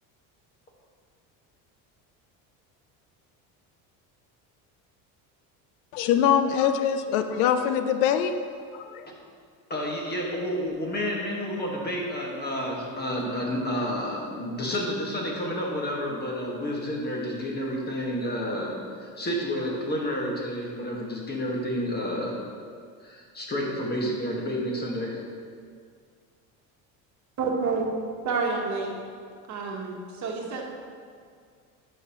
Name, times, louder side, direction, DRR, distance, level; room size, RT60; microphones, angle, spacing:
voice 1, 5.9-8.3 8.7-9.1, left 8 dB, 90° left, 9 dB, 0.6 m, -23 dB
voice 2, 9.7-22.4 23.0-25.2, equal, 25° left, -2 dB, 1.8 m, -30 dB
voice 3, 27.4-27.9 28.2-28.9 29.5-30.7, right 4 dB, 45° right, 0 dB, 1.4 m, -28 dB
10.5 x 5.7 x 3.1 m, 2.1 s
supercardioid pair, 100°, 39 cm